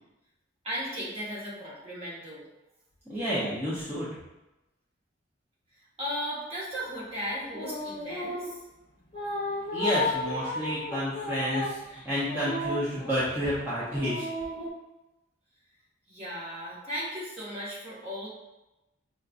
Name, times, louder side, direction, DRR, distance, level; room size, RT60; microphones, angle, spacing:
voice 1, 0.6-2.4 6.0-8.6 16.1-18.3, equal, 35° right, -7 dB, 1.3 m, -36 dB
voice 2, 3.1-4.1 9.7-14.3, equal, 10° right, -11 dB, 0.8 m, -30 dB
sound 1, 7.5-8.6 9.1-13.4 13.9-14.7, left 2 dB, 30° left, 0.8 m, -34 dB
5.3 x 2.3 x 2.5 m, 0.97 s
head